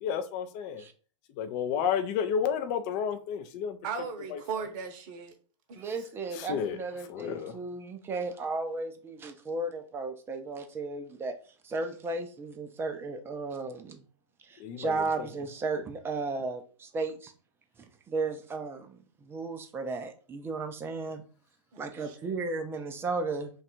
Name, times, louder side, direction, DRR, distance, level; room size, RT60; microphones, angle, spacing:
voice 1, 0.0-0.8 1.3-3.8 4.3-4.7 6.3-6.8 7.1-7.6 14.6-15.3, left 7 dB, 35° left, 0.5 m, -31 dB
voice 2, 3.8-5.3 5.7-6.0 21.7-22.3, right 6 dB, 40° right, 0.8 m, -38 dB
voice 3, 5.8-11.4 11.6-14.0 14.4-17.3 18.1-21.2 21.8-23.5, right 3 dB, 15° right, 0.5 m, -34 dB
3.3 x 2.4 x 4.2 m
figure-of-eight pair, 100°, 17 cm